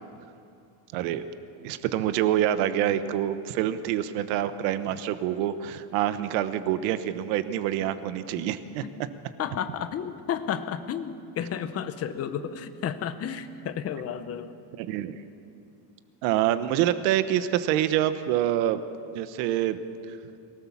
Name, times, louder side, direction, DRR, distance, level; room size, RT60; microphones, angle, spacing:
voice 1, 0.9-1.2 1.6-9.1 14.8-15.2 16.2-18.8 19.1-19.8, right 12 dB, 85° right, 12 dB, 1.2 m, -26 dB
voice 2, 9.4-14.5, left 8 dB, 30° left, 10 dB, 0.9 m, -32 dB
23.5 x 17.5 x 7.2 m, 2.6 s
cardioid pair, 160°, 48 cm